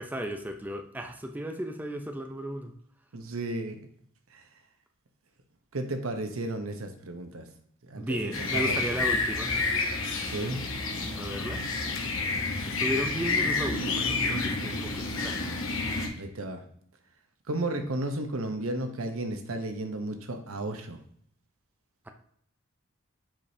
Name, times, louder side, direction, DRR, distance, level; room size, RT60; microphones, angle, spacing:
voice 1, 0.0-2.7 7.9-9.5 11.1-11.6 12.7-15.6 22.1-22.2, equal, 10° right, 5 dB, 0.5 m, -35 dB
voice 2, 3.1-3.8 4.3-4.4 5.7-7.5 7.8-9.1 10.3-10.6 16.2-16.6 17.5-21.0, right 2 dB, 80° right, 6 dB, 0.9 m, -33 dB
sound 1, 8.3-16.1, left 3 dB, 70° left, 1.0 m, -29 dB
7.2 x 5.0 x 2.7 m, 0.65 s
head